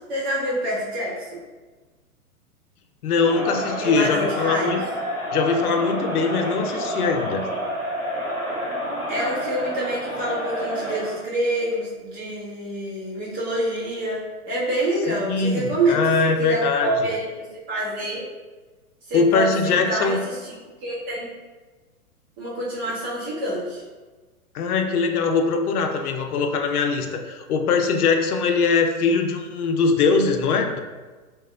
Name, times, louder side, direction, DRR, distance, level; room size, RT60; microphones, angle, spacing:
voice 1, 0.1-1.4 3.8-4.7 9.1-16.0 16.4-18.2 19.1-20.5 20.8-21.3 22.4-23.8, right 1 dB, 40° right, -8 dB, 1.5 m, -27 dB
voice 2, 3.0-4.8 5.3-7.4 15.1-17.1 19.1-20.2 24.5-30.8, left 4 dB, 80° left, 4 dB, 0.6 m, -22 dB
Crowd, 3.1-11.2, equal, 10° left, 0.4 m, -29 dB
3.5 x 2.9 x 2.3 m, 1.3 s
hypercardioid pair, 130°, 44 cm